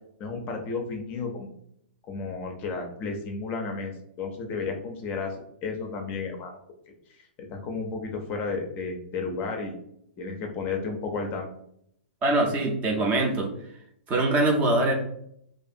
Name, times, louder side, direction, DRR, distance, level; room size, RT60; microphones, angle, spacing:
voice 1, 0.2-1.5 2.1-3.9 4.2-6.6 7.1-9.8 10.2-11.5, left 4 dB, 30° left, 3 dB, 0.5 m, -32 dB
voice 2, 12.2-13.5 14.1-14.9, right 2 dB, 25° right, 1 dB, 0.5 m, -23 dB
2.5 x 2.4 x 2.5 m, 0.72 s
hypercardioid pair, 135°, 6 cm